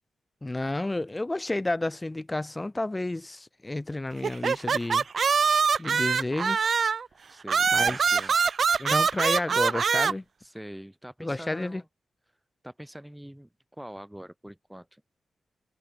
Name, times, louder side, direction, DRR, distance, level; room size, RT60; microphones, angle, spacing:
voice 1, 0.4-5.0 5.8-6.7 7.7-8.3 8.8-10.2 11.2-11.8, left 2 dB, 25° left, 1.6 m, -31 dB
sound 1, 4.2-7.1 7.5-10.1, right 5 dB, 60° right, 0.4 m, -24 dB
voice 2, 7.3-8.3 10.4-11.8 12.6-15.0, equal, 5° right, 1.2 m, -44 dB
supercardioid pair, 45°, 0 cm